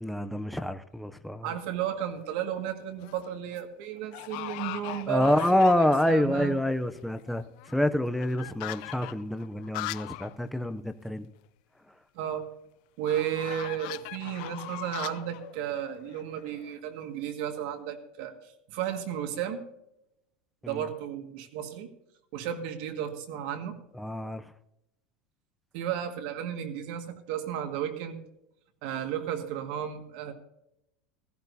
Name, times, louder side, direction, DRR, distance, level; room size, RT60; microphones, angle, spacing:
voice 1, 0.0-1.5 5.1-11.3 20.6-20.8 24.0-24.4, left 1 dB, ahead, 9 dB, 0.5 m, -27 dB
voice 2, 1.4-6.6 12.2-12.5 13.0-18.3 18.7-19.6 20.7-21.9 22.3-23.8 25.7-28.2 28.8-30.3, right 10 dB, 55° right, 6 dB, 1.8 m, -33 dB
sound 1, 1.8-2.3 2.8-3.3 3.5-3.6 4.1-6.3 6.7-6.8 7.0-10.3 10.6-10.7 11.0-11.1 13.0-16.8, left 20 dB, 55° left, 0.4 m, -40 dB
16.0 x 14.5 x 2.7 m, 0.82 s
supercardioid pair, 165°, 5 cm